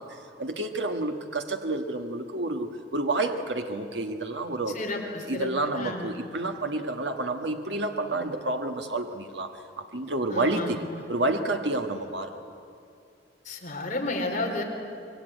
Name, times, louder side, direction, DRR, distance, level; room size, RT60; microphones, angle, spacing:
voice 1, 0.0-4.8 5.3-12.4, right 2 dB, 80° right, 5 dB, 1.5 m, -30 dB
voice 2, 4.7-5.5 5.7-6.1 10.3-10.9 13.4-14.6, left 2 dB, 45° left, 1 dB, 4.3 m, -32 dB
25.5 x 22.5 x 9.2 m, 2.5 s
head